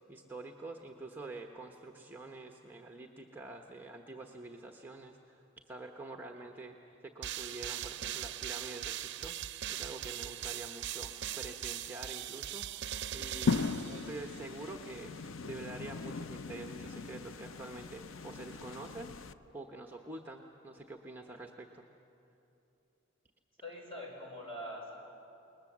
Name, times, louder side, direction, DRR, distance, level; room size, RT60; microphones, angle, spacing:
voice 1, 0.1-21.8, right 2 dB, 10° right, 3 dB, 0.9 m, -47 dB
sound 1, 7.2-14.5, right 11 dB, 60° right, 0.5 m, -40 dB
sound 2, 13.5-19.3, left 4 dB, 75° left, 0.6 m, -38 dB
voice 2, 23.6-25.0, equal, 30° left, -1 dB, 5.7 m, -43 dB
29.0 x 20.5 x 7.3 m, 2.8 s
head